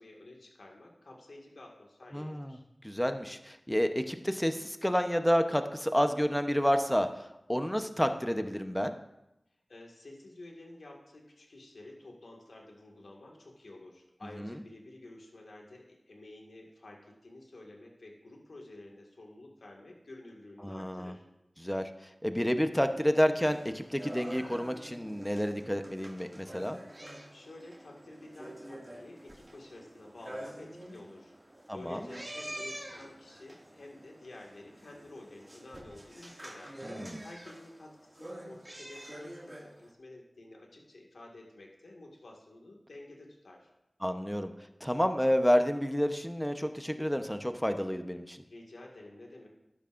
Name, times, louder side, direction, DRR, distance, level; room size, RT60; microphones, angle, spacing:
voice 1, 0.0-2.6 9.7-21.2 27.3-31.3 31.7-36.8 37.2-43.7 48.5-49.5, left 2 dB, 90° left, -1 dB, 1.9 m, -50 dB
voice 2, 2.1-2.6 2.8-8.9 14.3-14.5 20.6-21.1 21.6-21.9 22.2-26.8 31.7-32.0 36.8-37.2 44.0-44.5 44.8-48.4, equal, 5° left, 7 dB, 0.9 m, -29 dB
sound 1, 23.4-39.9, right 1 dB, 30° right, 2.2 m, -47 dB
12.5 x 12.0 x 2.6 m, 0.89 s
cardioid pair, 40°, 0 cm